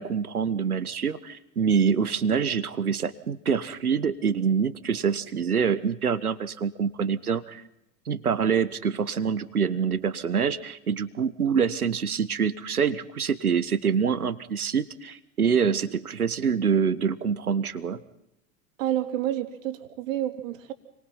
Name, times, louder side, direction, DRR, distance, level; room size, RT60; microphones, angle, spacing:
voice 1, 0.0-7.6 8.0-18.0, right 6 dB, 85° right, 14 dB, 1.6 m, -25 dB
voice 2, 18.8-20.7, right 12 dB, 60° right, 7 dB, 3.4 m, -29 dB
29.5 x 23.5 x 5.8 m, 0.83 s
figure-of-eight pair, 90°, 43 cm